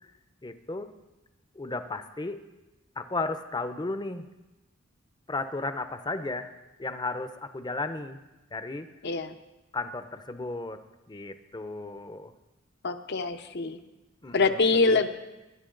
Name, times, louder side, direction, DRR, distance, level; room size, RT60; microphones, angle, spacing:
voice 1, 0.4-0.9 1.6-2.4 3.0-4.3 5.3-6.5 6.8-8.2 8.5-8.9 9.7-10.8 11.1-12.3 14.2-14.6 14.9-15.0, left 3 dB, 20° left, 10 dB, 0.7 m, -34 dB
voice 2, 9.0-9.3 12.8-13.8 14.3-15.1, left 3 dB, 55° left, 9 dB, 0.8 m, -24 dB
21.5 x 10.5 x 3.9 m, 1.0 s
head